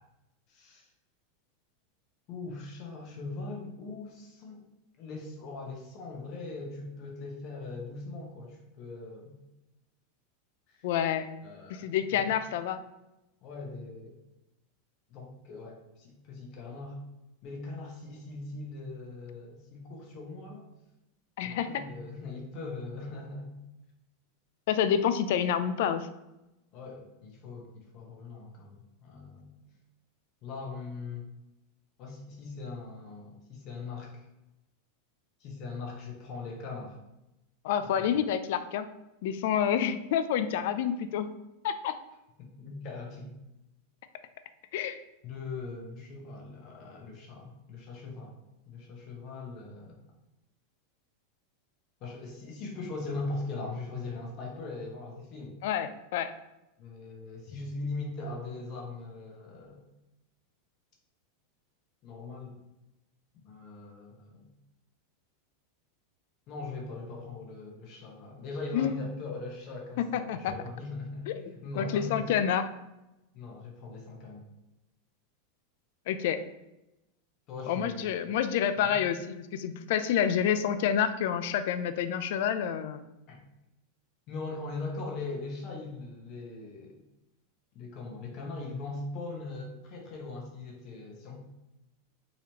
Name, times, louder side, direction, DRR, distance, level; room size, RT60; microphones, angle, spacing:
voice 1, 0.5-0.9 2.3-4.6 5.0-9.4 10.7-10.9 11.4-12.0 13.4-14.2 15.1-17.0 17.4-20.6 21.4-23.5 26.7-29.5 30.4-31.3 32.0-34.2 35.4-37.0 37.8-38.2 42.4-43.3 45.2-48.4 48.7-50.0 52.0-55.6 56.8-59.8 62.0-62.5 63.4-64.5 66.5-72.2 73.3-74.4 77.5-78.3 78.8-79.0 83.3-83.4 84.3-87.0 87.7-91.4, left 3 dB, 40° left, 0 dB, 0.9 m, -40 dB
voice 2, 10.8-11.3 11.7-12.8 21.4-21.7 24.7-26.1 37.6-38.9 39.2-41.3 41.6-41.9 44.7-45.0 55.6-56.3 68.7-68.9 70.1-70.5 71.3-71.4 71.8-72.7 76.1-76.4 77.7-83.0, left 9 dB, 60° left, 11 dB, 0.3 m, -28 dB
3.9 x 3.1 x 2.9 m, 0.92 s
supercardioid pair, 160°, 0 cm